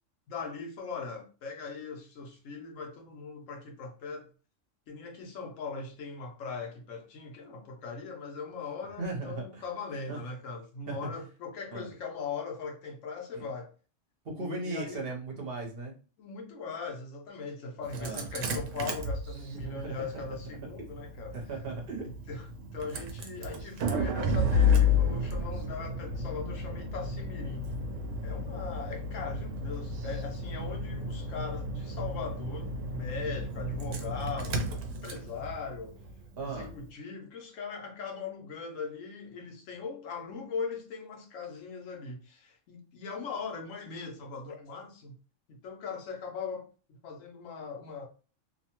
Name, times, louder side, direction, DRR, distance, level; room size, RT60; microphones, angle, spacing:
voice 1, 0.3-4.3 4.9-13.7 14.4-15.1 16.2-21.4 21.8-27.7 28.2-36.0 36.4-45.2 45.5-48.1, left 4 dB, 85° left, 1.1 m, -40 dB
voice 2, 9.0-9.4 10.1-10.2 10.9-11.1 11.7-11.9 13.3-13.4 14.2-15.9 18.0-18.3 19.5-20.0 21.3-22.1 36.4-36.7, right 3 dB, 55° right, 0.9 m, -37 dB
Engine starting, 17.8-36.8, left 3 dB, 80° right, 1.0 m, -32 dB
2.7 x 2.1 x 2.8 m
omnidirectional pair, 1.3 m